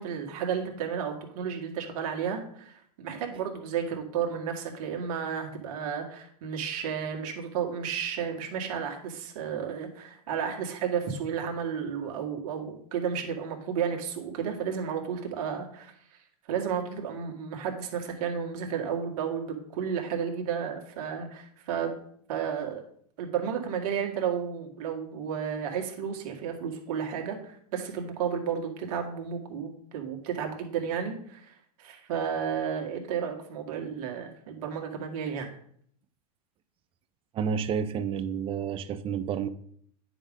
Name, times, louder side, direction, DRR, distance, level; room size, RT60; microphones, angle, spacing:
voice 1, 0.0-15.9 16.5-22.0 22.3-22.8 23.2-35.5, right 7 dB, 60° right, 2 dB, 2.0 m, -32 dB
voice 2, 37.3-39.5, right 7 dB, 25° right, 12 dB, 0.6 m, -30 dB
9.6 x 5.1 x 3.8 m, 0.62 s
hypercardioid pair, 120°, 20 cm